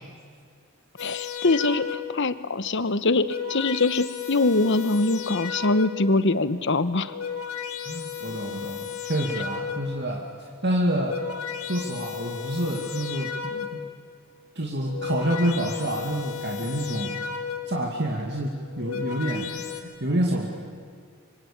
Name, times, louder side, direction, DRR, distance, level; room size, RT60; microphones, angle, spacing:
sound 1, 1.0-2.3 3.0-6.2 6.9-10.1 10.8-14.0 14.7-17.9 18.6-19.8, left 7 dB, 70° left, 2.4 m, -34 dB
voice 1, 1.0-7.1, left 3 dB, 55° left, 14 dB, 1.0 m, -23 dB
voice 2, 7.9-10.2 10.6-11.2 11.6-13.8 14.6-17.2 17.7-20.5, right 1 dB, 50° right, 0 dB, 2.3 m, -28 dB
25.5 x 24.5 x 8.7 m, 2.1 s
head